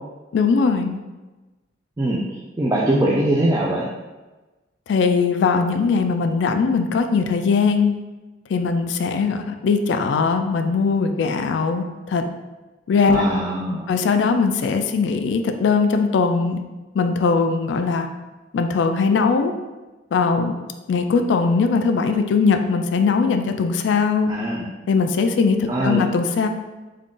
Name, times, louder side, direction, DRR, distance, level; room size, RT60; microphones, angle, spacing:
voice 1, 0.3-1.0 4.9-7.9 8.5-12.2 12.9-13.4 13.9-16.6 16.9-18.1 18.5-19.5 20.1-20.5 20.9-24.3 24.9-26.5, left 5 dB, 65° left, 7 dB, 0.3 m, -20 dB
voice 2, 2.6-3.9 13.1-13.9 24.3-24.7 25.7-26.0, right 1 dB, 20° right, -5 dB, 0.3 m, -21 dB
3.7 x 2.3 x 3.6 m, 1.2 s
head